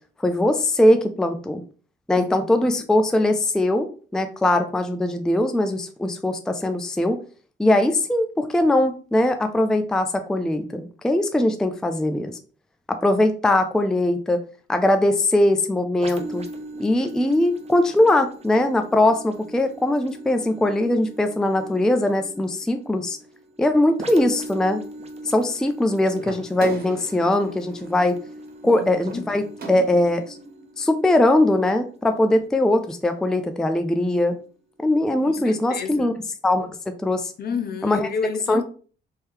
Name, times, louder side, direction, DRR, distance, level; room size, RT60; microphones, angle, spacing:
voice 1, 0.2-1.6 2.1-7.2 7.6-12.4 12.9-14.4 14.7-16.4 16.8-23.2 23.6-24.8 25.3-28.2 28.6-29.4 29.7-30.4 30.8-34.4 34.8-36.1 36.4-37.3 37.8-38.1 38.5-38.6, left 1 dB, 5° left, 0.4 m, -21 dB
sound 1, 16.0-33.5 34.1-34.2, right 1 dB, 30° right, 0.7 m, -41 dB
sound 2, 26.2-30.3, right 3 dB, 50° right, 1.1 m, -40 dB
voice 2, 28.6-29.3 35.3-36.2 37.4-38.6, left 6 dB, 50° left, 0.7 m, -31 dB
3.2 x 2.7 x 3.6 m
cardioid pair, 90°, 20 cm